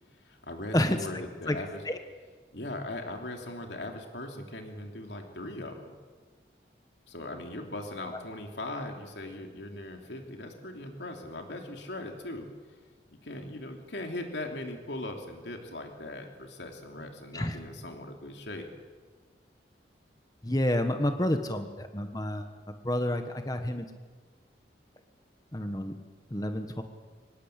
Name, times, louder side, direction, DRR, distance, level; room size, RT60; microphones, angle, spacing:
voice 1, 0.1-1.8 2.5-6.0 7.1-12.5 13.1-18.7, left 1 dB, 80° left, 3 dB, 3.0 m, -39 dB
voice 2, 20.4-22.5 22.8-23.9 25.5-25.9 26.3-26.8, left 1 dB, 20° left, 7 dB, 1.4 m, -29 dB
25.0 x 19.5 x 8.4 m, 1.4 s
head